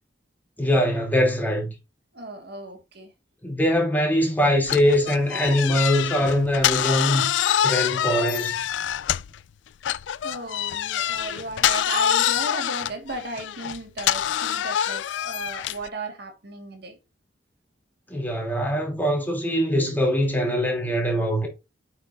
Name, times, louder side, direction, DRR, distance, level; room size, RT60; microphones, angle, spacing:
voice 1, 0.6-1.7 3.4-7.2 7.6-8.6 18.1-21.5, equal, 10° left, 2.8 m, -22 dB
voice 2, 2.1-3.1 10.2-17.0, right 2 dB, 65° right, 1.7 m, -35 dB
sound 1, 4.7-9.4 9.8-15.9, left 10 dB, 85° left, 0.4 m, -25 dB
8.4 x 5.9 x 2.5 m
head